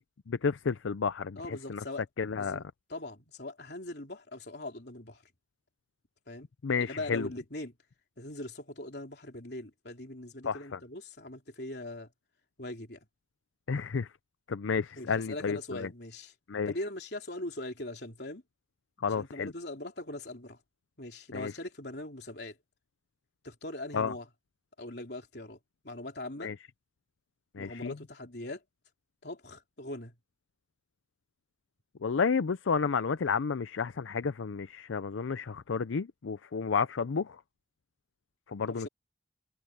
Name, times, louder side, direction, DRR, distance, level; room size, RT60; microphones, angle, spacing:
voice 1, 0.3-1.8 2.2-2.6 6.6-7.3 10.5-10.8 13.7-14.1 14.5-15.9 16.5-16.7 19.0-19.5 21.3-21.5 23.9-24.1 26.4-26.5 27.5-27.9 32.0-37.4 38.5-38.9, left 5 dB, 85° left, 0.5 m, -31 dB
voice 2, 1.4-2.0 2.4-2.6 2.9-5.2 6.3-6.5 6.9-7.7 8.2-12.1 12.6-13.0 15.0-16.3 16.7-18.4 19.1-20.6 21.0-22.6 23.4-24.3 24.8-25.6 25.8-26.5 27.6-28.6 29.2-30.2 38.7-38.9, left 1 dB, 55° left, 3.6 m, -41 dB
head